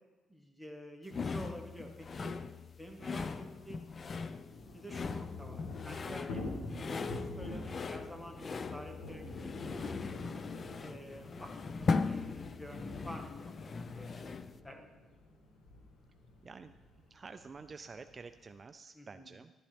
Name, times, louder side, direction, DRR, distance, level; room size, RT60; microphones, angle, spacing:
voice 1, 0.3-2.3 2.8-3.9 4.7-6.4 6.9-10.2 10.8-14.9 18.9-19.3, equal, 5° left, 3 dB, 1.6 m, -49 dB
sound 1, 1.1-14.6, left 4 dB, 40° left, 0.4 m, -39 dB
Thunder / Rain, 2.7-18.6, left 2 dB, 90° left, 1.7 m, -48 dB
voice 2, 16.4-19.5, right 4 dB, 35° right, 9 dB, 0.4 m, -50 dB
11.5 x 10.0 x 3.5 m, 1.2 s
cardioid pair, 90°, 0 cm